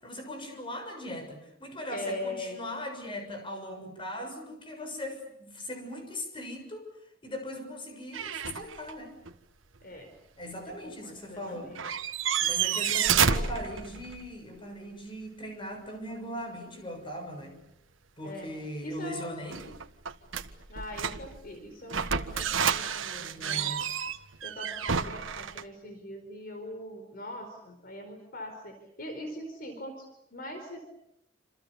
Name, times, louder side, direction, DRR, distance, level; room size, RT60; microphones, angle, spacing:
voice 1, 0.0-6.9 7.2-9.2 10.4-11.7 12.4-17.6 18.2-19.6 23.2-23.8, equal, 25° left, 5 dB, 6.7 m, -39 dB
voice 2, 1.9-2.6 9.8-10.1 10.7-11.8 12.9-13.8 18.2-18.5 18.8-19.3 20.7-23.7 24.4-30.9, left 1 dB, 50° left, 6 dB, 4.6 m, -41 dB
sound 1, 8.1-8.9 9.3-9.4 11.5-11.6 11.7-14.3 19.5-21.4 21.9-25.6, right 7 dB, 80° right, 1.5 m, -30 dB
28.5 x 27.5 x 7.1 m, 0.81 s
head